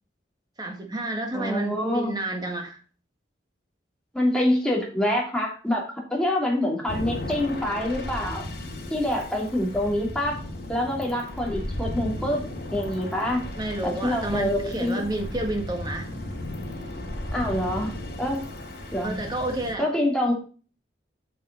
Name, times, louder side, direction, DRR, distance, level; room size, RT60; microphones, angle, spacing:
voice 1, 0.6-2.8 13.6-16.1 19.0-19.9, right 1 dB, 20° right, 1.8 m, -30 dB
voice 2, 1.3-2.1 4.1-8.5 8.9-10.4 10.7-12.4 12.7-13.4 13.8-15.0 17.3-17.9 18.2-18.4 18.9-19.2 19.8-20.3, left 1 dB, 5° left, 2.7 m, -26 dB
sound 1, 6.9-19.7, left 1 dB, 60° left, 2.7 m, -35 dB
8.5 x 6.6 x 4.1 m
head